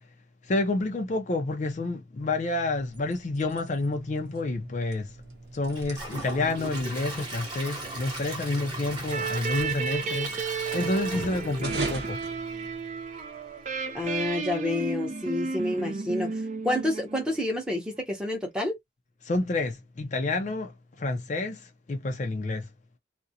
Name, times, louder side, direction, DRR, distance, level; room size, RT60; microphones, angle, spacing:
voice 1, 0.4-5.2 5.5-12.2 19.2-22.7, left 2 dB, 40° left, 0.4 m, -29 dB
sound 1, 2.7-13.2, right 2 dB, 65° right, 0.8 m, -41 dB
Gurgling / Toilet flush / Trickle dribble, 5.7-12.8 13.2-13.3 13.8-13.9, right 2 dB, 25° right, 1.0 m, -38 dB
sound 2, 9.1-17.6, right 5 dB, 40° right, 0.4 m, -33 dB
voice 2, 13.9-18.8, left 1 dB, 5° right, 0.7 m, -29 dB
2.4 x 2.0 x 2.7 m
head